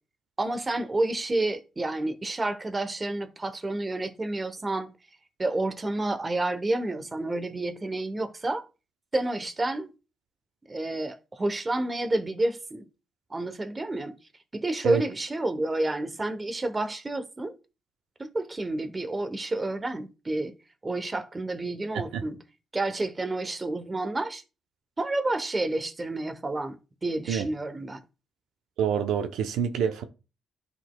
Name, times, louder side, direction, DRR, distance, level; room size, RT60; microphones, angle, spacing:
voice 1, 0.4-4.9 5.4-8.7 9.1-9.9 10.7-12.9 13.3-14.1 14.5-17.6 18.2-20.5 20.8-22.4 22.7-24.4 25.0-28.0, right 2 dB, 25° right, 0.9 m, -29 dB
voice 2, 28.8-30.0, right 7 dB, 85° right, 0.8 m, -27 dB
11.5 x 4.0 x 2.3 m
cardioid pair, 90°, 0 cm